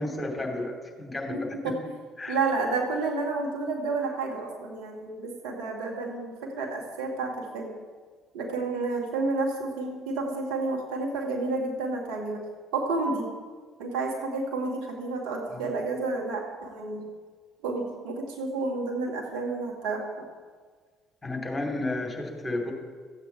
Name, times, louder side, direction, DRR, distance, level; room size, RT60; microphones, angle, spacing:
voice 1, 0.0-1.7 2.2-2.4 15.5-15.7 21.2-22.7, left 2 dB, 15° left, 1 dB, 2.6 m, -32 dB
voice 2, 1.3-1.9 2.3-7.7 8.3-12.4 12.7-13.3 13.8-17.0 17.6-20.2, right 3 dB, 65° right, 1 dB, 1.8 m, -30 dB
14.0 x 8.1 x 4.6 m, 1.5 s
figure-of-eight pair, 50°, 0 cm